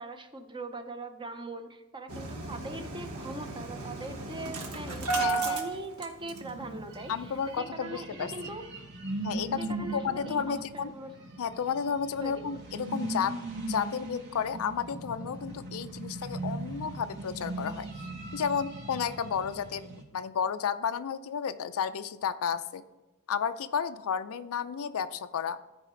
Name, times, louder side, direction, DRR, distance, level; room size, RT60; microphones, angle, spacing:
voice 1, 0.0-8.7 9.6-11.1 12.2-12.5, right 2 dB, 20° right, 7 dB, 0.7 m, -41 dB
Engine starting, 2.1-6.7 6.9-7.0 7.4-7.5, right 3 dB, 70° right, 1.1 m, -34 dB
voice 2, 5.2-5.6 7.1-8.3 9.2-9.7 9.9-10.9 11.4-13.4 13.7-22.8 23.3-25.6, left 7 dB, 65° left, 12 dB, 0.4 m, -32 dB
sound 1, 6.2-20.0, right 2 dB, 55° right, 2.0 m, -39 dB
14.0 x 4.8 x 3.7 m, 1.1 s
head